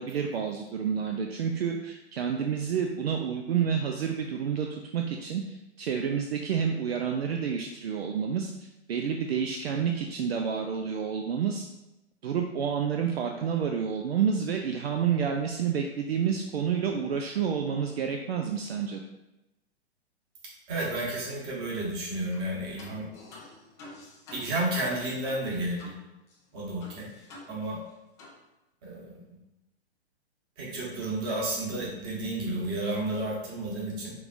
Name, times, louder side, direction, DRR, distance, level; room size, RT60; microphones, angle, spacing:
voice 1, 0.0-11.7 12.2-19.0, right 7 dB, 65° right, 3 dB, 0.5 m, -29 dB
voice 2, 20.7-23.1 24.3-25.9 26.5-27.1 27.5-27.8 28.8-29.2 30.6-34.1, right 1 dB, 30° right, -4 dB, 1.4 m, -31 dB
sound 1, 22.3-22.5 22.8-26.0 26.3-26.4 26.8-27.9 28.2-28.4, left 2 dB, 10° left, 0.3 m, -48 dB
4.8 x 3.5 x 2.6 m, 0.96 s
figure-of-eight pair, 120°, 33 cm